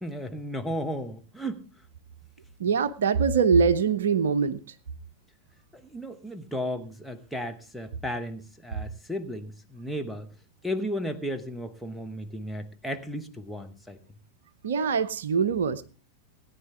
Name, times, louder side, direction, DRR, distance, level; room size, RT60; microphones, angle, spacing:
voice 1, 0.0-1.6 5.7-10.3 10.6-14.0, equal, ahead, 1.0 m, -34 dB
voice 2, 2.6-4.6 14.6-15.8, right 6 dB, 65° right, 0.6 m, -23 dB
17.5 x 9.6 x 3.4 m
figure-of-eight pair, 90°, 0 cm